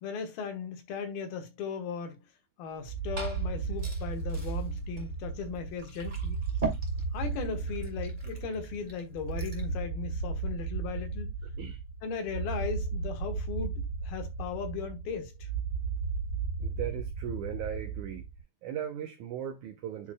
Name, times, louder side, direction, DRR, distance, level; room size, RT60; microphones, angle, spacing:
voice 1, 0.0-2.3 2.6-6.4 7.1-11.3 12.0-15.5, left 6 dB, 75° left, 3.1 m, -37 dB
Glass / Fill (with liquid), 2.7-9.7, right 3 dB, 15° right, 1.9 m, -42 dB
sound 1, 2.9-18.4, right 4 dB, 55° right, 2.6 m, -35 dB
voice 2, 16.6-18.2 18.6-20.1, right 10 dB, 75° right, 1.8 m, -37 dB
10.0 x 4.7 x 2.2 m
omnidirectional pair, 4.4 m